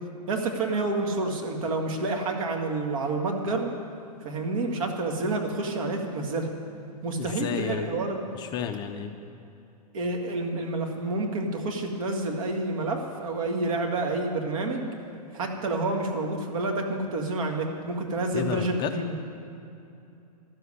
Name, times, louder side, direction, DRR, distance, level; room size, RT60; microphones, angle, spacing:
voice 1, 0.3-3.7 4.2-6.5 7.0-8.3 9.9-14.9 15.3-19.2, right 2 dB, 55° right, 2 dB, 2.0 m, -29 dB
voice 2, 7.2-7.9 8.3-9.1 18.3-18.9, left 8 dB, 20° left, 6 dB, 0.5 m, -31 dB
12.5 x 7.7 x 9.7 m, 2.7 s
hypercardioid pair, 145°, 21 cm